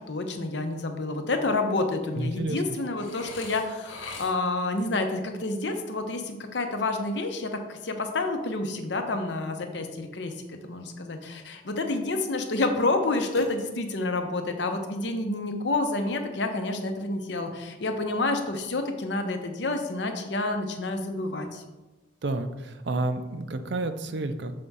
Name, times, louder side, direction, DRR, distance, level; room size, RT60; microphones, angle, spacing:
voice 1, 0.1-21.6, left 2 dB, 65° left, 5 dB, 0.8 m, -29 dB
voice 2, 2.1-2.6 22.2-24.5, right 2 dB, 65° right, 8 dB, 0.5 m, -30 dB
Burping eructation, 3.0-4.7 13.3-14.1, left 2 dB, 90° left, 1.0 m, -42 dB
6.8 x 3.5 x 5.4 m, 1.1 s
head